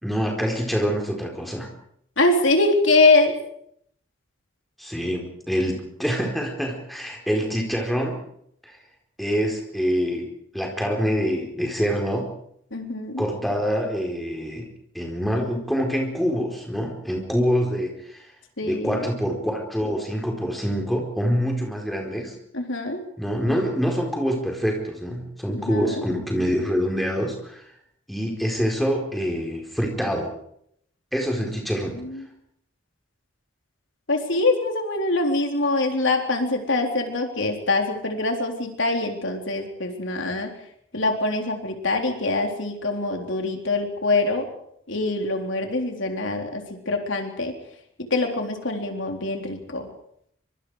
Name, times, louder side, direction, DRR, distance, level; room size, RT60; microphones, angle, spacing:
voice 1, 0.0-1.7 4.8-8.2 8.6-8.7 9.2-12.3 13.2-14.7 14.9-18.2 18.6-22.3 23.2-27.6 28.1-30.3 31.1-32.0, equal, ahead, 1 dB, 4.4 m, -25 dB
voice 2, 2.2-3.3 12.7-13.3 18.6-19.1 22.5-23.0 25.5-26.0 31.4-31.6 32.0-32.3 34.1-40.5 40.9-44.5 44.9-47.5 48.1-49.9, left 2 dB, 75° left, 3 dB, 3.8 m, -24 dB
25.0 x 24.0 x 5.0 m, 0.70 s
head